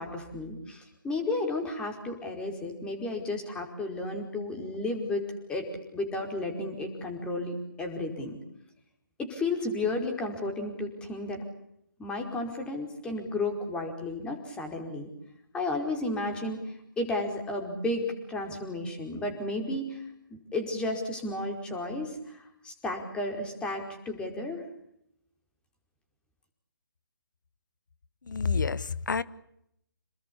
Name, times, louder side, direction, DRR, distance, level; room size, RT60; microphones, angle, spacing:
voice 1, 0.0-5.7 5.9-8.4 9.2-11.4 12.0-15.1 15.5-16.6 17.0-20.0 20.5-24.6, left 2 dB, 10° left, 5.0 m, -33 dB
voice 2, 28.3-29.2, left 5 dB, 60° left, 1.4 m, -28 dB
28.5 x 20.5 x 8.7 m
figure-of-eight pair, 145°, 11 cm